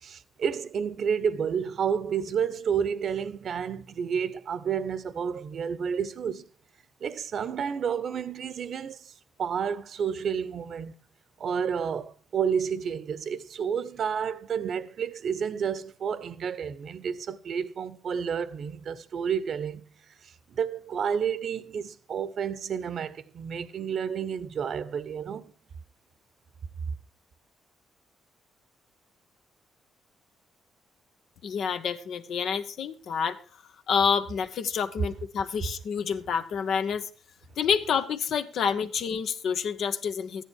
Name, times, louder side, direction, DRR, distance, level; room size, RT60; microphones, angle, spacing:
voice 1, 0.0-6.5 7.0-9.1 9.4-10.9 11.4-19.8 20.2-25.5, right 7 dB, 60° right, 1.0 m, -30 dB
voice 2, 31.4-33.4 33.9-37.0 37.6-40.4, left 7 dB, 70° left, 1.3 m, -28 dB
13.5 x 10.5 x 4.7 m
cardioid pair, 90°, 0 cm